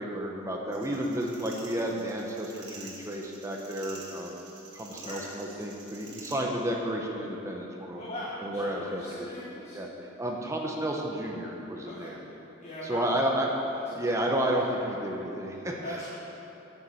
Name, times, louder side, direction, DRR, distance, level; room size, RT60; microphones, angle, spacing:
voice 1, 0.0-4.4 4.7-8.0 8.4-9.3 9.7-12.1 12.9-13.5 14.0-15.7, right 1 dB, 15° right, -1 dB, 0.9 m, -31 dB
sound 1, 0.7-6.4, right 3 dB, 60° right, 2.1 m, -47 dB
voice 2, 4.9-5.6 8.0-9.8 11.8-12.2 12.6-13.4 13.7-14.1 14.7-14.9 15.8-16.1, left 1 dB, 35° left, -6 dB, 1.4 m, -40 dB
11.0 x 7.1 x 6.4 m, 3.0 s
head